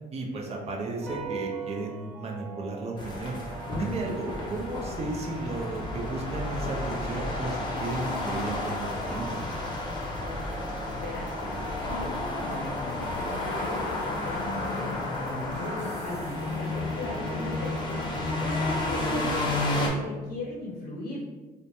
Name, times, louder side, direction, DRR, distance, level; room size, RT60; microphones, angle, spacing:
voice 1, 0.1-3.4 3.8-9.2, right 2 dB, 40° right, 0 dB, 0.6 m, -34 dB
sound 1, 0.5-18.5, right 4 dB, 85° right, 0.4 m, -45 dB
sound 2, 1.1-7.8, right 6 dB, 10° left, 1.1 m, -43 dB
sound 3, 3.0-19.9, left 2 dB, 25° left, 0.7 m, -31 dB
voice 2, 11.0-11.3 11.9-21.2, left 2 dB, 60° left, -2 dB, 0.6 m, -38 dB
3.0 x 2.1 x 2.6 m, 1.2 s
cardioid pair, 110°, 17 cm